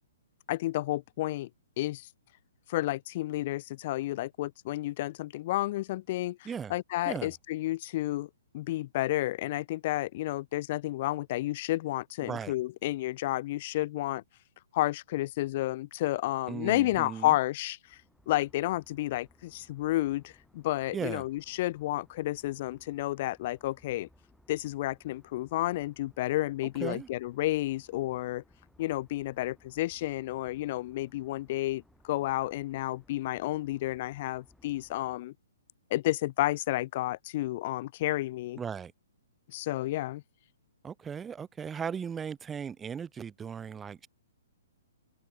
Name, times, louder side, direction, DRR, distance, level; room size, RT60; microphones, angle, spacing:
voice 1, 0.5-1.5 1.8-2.1 2.7-6.4 6.7-14.2 14.7-18.0 18.3-24.1 24.5-28.4 28.8-35.3 35.9-38.6 39.5-40.2, left 16 dB, 45° left, 0.4 m, -31 dB
voice 2, 12.2-12.5 16.5-17.3 20.9-21.2 26.8-27.1 38.6-38.9 40.8-44.1, right 7 dB, 15° right, 1.2 m, -37 dB
sound 1, 17.8-35.2, left 1 dB, ahead, 3.3 m, -64 dB
open air
hypercardioid pair, 140°, 0 cm